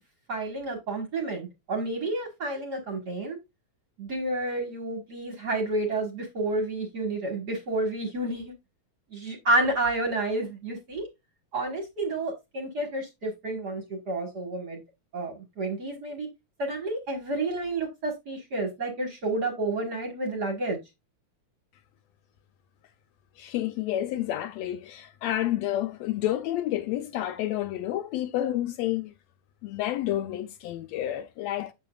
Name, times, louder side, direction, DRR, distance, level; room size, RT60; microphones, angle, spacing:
voice 1, 0.3-3.4 4.0-8.5 9.1-11.0 11.5-14.8 15.1-16.3 16.6-20.8, right 2 dB, 45° right, 1.5 m, -30 dB
voice 2, 23.4-29.1 29.6-31.7, left 13 dB, 80° left, 1.7 m, -30 dB
8.4 x 6.7 x 2.3 m
omnidirectional pair, 3.4 m